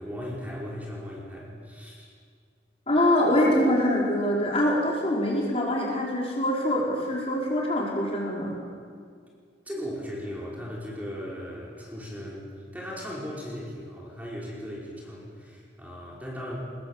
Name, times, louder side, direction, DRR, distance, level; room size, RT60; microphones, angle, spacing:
voice 1, 0.0-2.1 9.7-16.6, equal, 10° right, -5 dB, 5.3 m, -37 dB
voice 2, 2.9-8.5, left 1 dB, 30° left, -4 dB, 4.7 m, -24 dB
25.5 x 21.0 x 7.5 m, 2.1 s
head